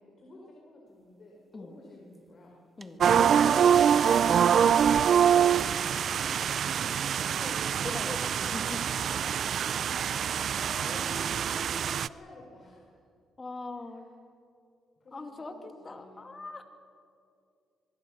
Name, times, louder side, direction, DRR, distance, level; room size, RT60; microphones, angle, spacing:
voice 1, 0.0-2.6 3.4-4.8 5.1-5.6 6.0-7.4 7.8-8.0 8.9-9.9 10.2-13.0 13.8-13.9 15.0-16.3, left 2 dB, 45° left, -1 dB, 4.6 m, -50 dB
sound 1, 2.1-2.2 2.8-3.0 3.4-7.0 7.5-8.2, right 2 dB, 20° right, 1.2 m, -47 dB
sound 2, 3.0-12.1, right 8 dB, 60° right, 0.4 m, -25 dB
Piano, 3.2-8.9, left 3 dB, 65° left, 3.3 m, -47 dB
voice 2, 7.4-8.9 13.4-14.1 15.1-16.6, left 3 dB, 30° left, 5 dB, 2.6 m, -41 dB
24.0 x 22.0 x 6.5 m, 2.4 s
cardioid pair, 90°, 0 cm